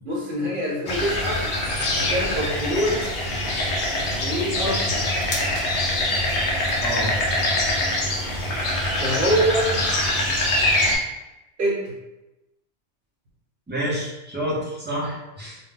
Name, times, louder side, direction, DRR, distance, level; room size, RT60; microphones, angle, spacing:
voice 1, 0.0-1.5 1.9-3.1 4.2-5.1 9.0-9.8 11.6-11.9, equal, 55° right, -4 dB, 1.0 m, -25 dB
sound 1, 0.9-11.0, left 1 dB, 50° left, 0.6 m, -24 dB
voice 2, 6.8-7.1 13.7-15.6, equal, 10° right, -6 dB, 0.6 m, -28 dB
2.2 x 2.2 x 3.8 m, 0.96 s
omnidirectional pair, 1.1 m